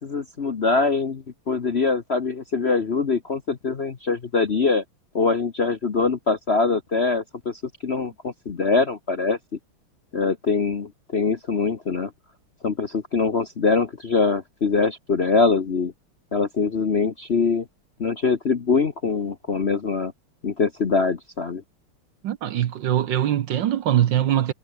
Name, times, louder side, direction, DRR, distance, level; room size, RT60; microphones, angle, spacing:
voice 1, 0.0-4.8 5.1-9.4 10.1-12.1 12.6-15.9 16.3-17.6 18.0-20.1 20.4-21.6, left 4 dB, 40° left, 1.0 m, -23 dB
voice 2, 22.2-24.5, right 11 dB, 65° right, 1.5 m, -22 dB
omnidirectional pair, 2.4 m